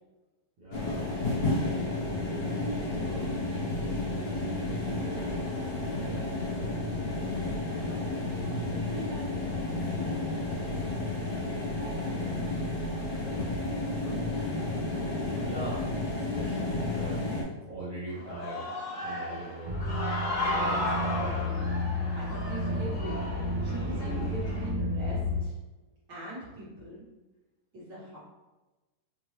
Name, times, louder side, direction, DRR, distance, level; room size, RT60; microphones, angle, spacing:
voice 1, 0.6-1.1 1.8-2.6 3.0-3.4 3.8-6.4 14.0-14.4 15.4-15.9 16.1-18.7 19.0-19.9, right 2 dB, 60° right, -9 dB, 1.3 m, -42 dB
sound 1, 0.7-17.4, left 2 dB, 70° left, 0.9 m, -31 dB
voice 2, 7.8-8.6 8.9-11.1 22.1-23.2 23.6-25.6 26.1-27.0 27.7-28.2, right 1 dB, 45° right, -9 dB, 1.6 m, -42 dB
Human voice / Cheering, 18.1-24.7, left 2 dB, 50° left, 1.7 m, -34 dB
sound 2, 19.6-25.4, left 1 dB, 85° right, 1.2 m, -32 dB
5.0 x 2.7 x 3.2 m, 1.1 s
omnidirectional pair, 3.8 m